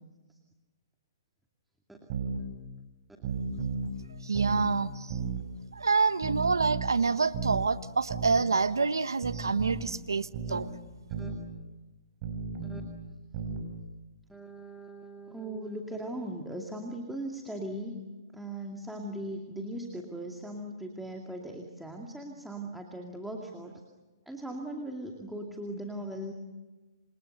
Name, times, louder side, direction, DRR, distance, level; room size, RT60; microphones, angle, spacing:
sound 1, 2.1-2.4 3.2-3.9 4.3-4.7 5.1-5.4 6.2-6.9 7.3-7.7 8.1-8.4 9.2-9.9 10.3-10.7 11.1-11.4 12.2-12.9 13.3-13.7, right 5 dB, 40° right, 5.3 m, -34 dB
voice 1, 4.2-5.2 5.7-10.7, right 4 dB, 90° right, 14 dB, 1.1 m, -27 dB
voice 2, 14.3-18.0 18.3-23.8 24.3-26.3, right 1 dB, 5° right, 1 dB, 2.3 m, -39 dB
28.0 x 27.5 x 6.7 m, 1.2 s
hypercardioid pair, 130°, 2 cm